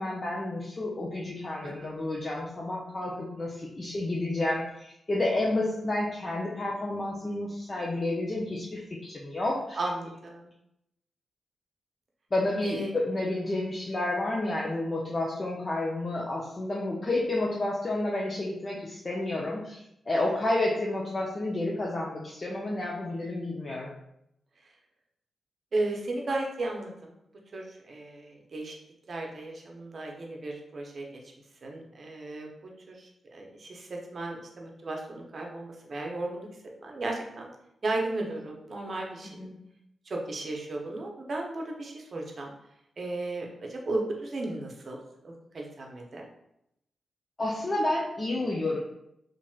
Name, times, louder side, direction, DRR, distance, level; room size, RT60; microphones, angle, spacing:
voice 1, 0.0-9.8 12.3-23.9 39.4-39.6 47.4-48.8, left 2 dB, 40° left, -3 dB, 0.5 m, -30 dB
voice 2, 9.8-10.5 12.6-12.9 25.7-27.1 27.5-28.8 29.1-31.2 31.6-32.5 32.9-36.5 36.8-37.5 37.8-39.4 40.1-42.5 43.0-46.3, right 2 dB, 55° right, 1 dB, 0.6 m, -35 dB
3.0 x 2.5 x 2.3 m, 0.80 s
supercardioid pair, 45°, 0 cm